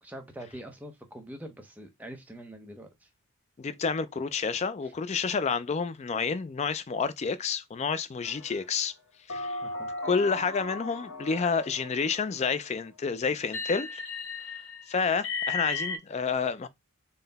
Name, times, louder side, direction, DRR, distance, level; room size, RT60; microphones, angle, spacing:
voice 1, 0.0-3.1 9.6-9.9, right 1 dB, 5° right, 0.6 m, -44 dB
voice 2, 3.6-8.9 9.3-9.6 10.0-14.0 14.9-16.7, left 5 dB, 30° left, 0.3 m, -29 dB
sound 1, 8.2-8.8 9.3-12.4 13.5-16.0, left 3 dB, 65° left, 1.3 m, -36 dB
3.9 x 2.1 x 3.9 m
head